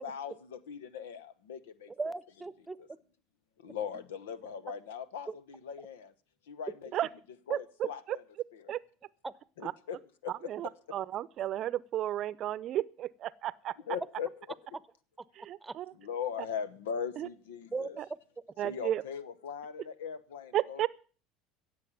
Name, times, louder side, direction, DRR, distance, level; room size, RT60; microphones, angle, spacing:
voice 1, 0.0-1.9 2.8-2.9 3.6-6.1 6.5-6.9 7.5-8.2 8.5-8.7 9.6-10.5 13.9-14.3 16.0-18.0 18.6-20.9, left 7 dB, 85° left, 1.0 m, -40 dB
voice 2, 2.0-3.0 9.2-9.3 15.6-15.7 17.7-18.2, right 3 dB, 15° right, 0.9 m, -38 dB
voice 3, 7.5-7.9 8.7-8.8 9.6-9.7 10.5-13.7 15.4-15.9 17.2-17.3 18.0-18.1 18.6-19.0 20.5-20.9, right 12 dB, 50° right, 0.7 m, -33 dB
16.5 x 7.5 x 7.1 m
hypercardioid pair, 85°, 0 cm